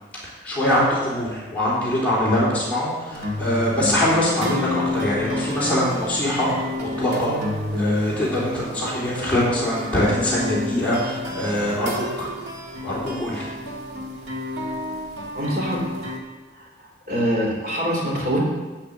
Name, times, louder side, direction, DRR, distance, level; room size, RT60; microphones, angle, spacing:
voice 1, 0.2-12.3 12.8-13.5, left 1 dB, 10° left, -8 dB, 3.6 m, -23 dB
sound 1, 3.1-16.2, left 1 dB, 80° right, 2.0 m, -30 dB
voice 2, 15.3-15.9 16.5-18.4, equal, 50° right, -3 dB, 3.5 m, -25 dB
11.5 x 5.8 x 8.1 m, 1.3 s
head